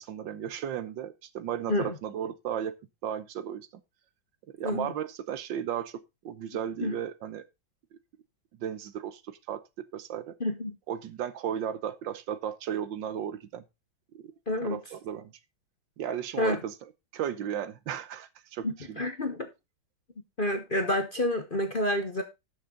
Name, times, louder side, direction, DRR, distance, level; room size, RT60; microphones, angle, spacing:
voice 1, 0.0-2.8 3.0-3.7 4.6-7.4 8.6-10.3 10.9-13.6 14.1-14.2 14.6-15.3 16.0-16.7 17.1-19.0, right 9 dB, 70° right, 1.5 m, -35 dB
voice 2, 10.4-10.8 14.5-14.8 16.4-16.6 18.6-19.5 20.4-22.2, left 1 dB, 35° left, 0.9 m, -29 dB
12.5 x 6.6 x 3.8 m
omnidirectional pair, 2.2 m